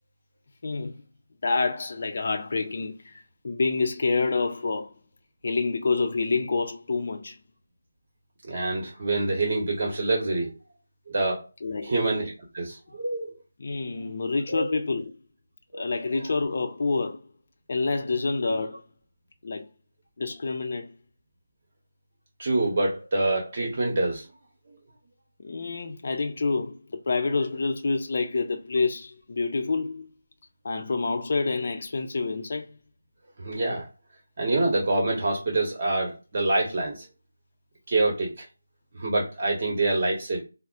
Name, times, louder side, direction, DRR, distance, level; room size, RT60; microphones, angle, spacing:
voice 1, 0.6-1.0 1.4-4.9 5.4-7.4 11.6-11.9 13.6-15.2 15.7-17.3 17.7-18.8 19.4-19.7 20.2-20.9 25.4-30.1 30.6-32.8, left 3 dB, 45° left, 0.6 m, -27 dB
voice 2, 8.4-10.5 11.1-11.4 11.8-13.3 14.5-14.7 15.7-15.9 22.4-24.3 33.4-33.9 34.4-37.1 37.9-38.4 38.9-40.4, right 2 dB, 40° right, 1.2 m, -26 dB
5.5 x 2.1 x 2.5 m
figure-of-eight pair, 165°, 0 cm